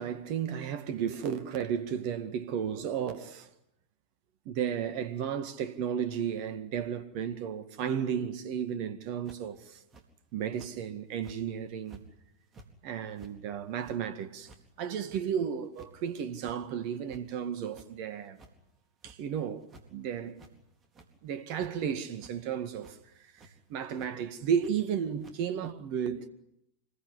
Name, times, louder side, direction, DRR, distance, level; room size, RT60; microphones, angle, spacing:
voice 1, 0.0-3.5 4.5-9.8 10.3-12.0 12.8-14.5 14.8-18.4 19.0-20.4 21.2-23.0 23.7-26.3, right 8 dB, 45° right, 1.9 m, -33 dB
sound 1, 9.3-9.5 9.9-10.1 10.6-10.7 11.2-11.4 11.9-12.0 12.4-12.7 13.2-13.3 13.8-14.0 14.4-14.6 15.1-15.3 15.6-15.9 16.4-16.6 16.9-17.5 17.7-17.9 18.4-18.5 19.0-19.2 19.6-19.9 20.3-20.5 20.8-21.1 21.6-21.7 22.2-22.3 22.8-23.0 23.4-23.5 24.0-24.1 24.6-24.7 25.2-25.4, right 3 dB, 25° right, 4.1 m, -53 dB
26.0 x 22.0 x 9.9 m
figure-of-eight pair, 90°, 0 cm